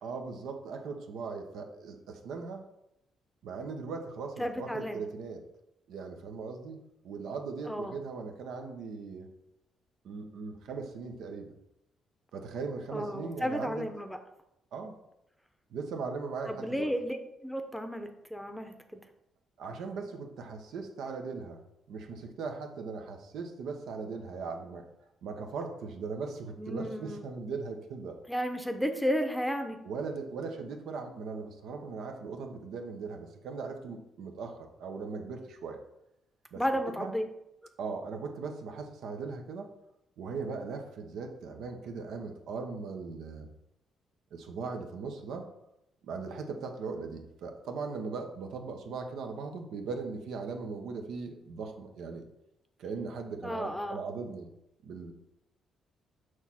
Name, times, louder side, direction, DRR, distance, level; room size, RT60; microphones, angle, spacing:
voice 1, 0.0-2.7 3.4-5.4 5.9-9.3 10.0-11.5 12.3-13.9 14.7-14.9 15.7-16.9 19.6-21.6 21.9-24.9 25.2-28.2 29.8-35.8 36.5-36.6 37.0-37.1 37.8-39.7 40.2-43.5 44.3-45.5 46.1-52.3 52.8-54.5 54.8-55.1, right 4 dB, 80° right, 4 dB, 0.8 m, -39 dB
voice 2, 4.4-5.0 7.7-7.9 12.9-14.2 16.5-17.2 17.4-18.7 26.6-27.2 28.3-29.8 36.6-37.3 53.4-54.0, equal, ahead, 6 dB, 0.7 m, -33 dB
6.3 x 3.1 x 5.7 m, 0.85 s
cardioid pair, 90°, 0 cm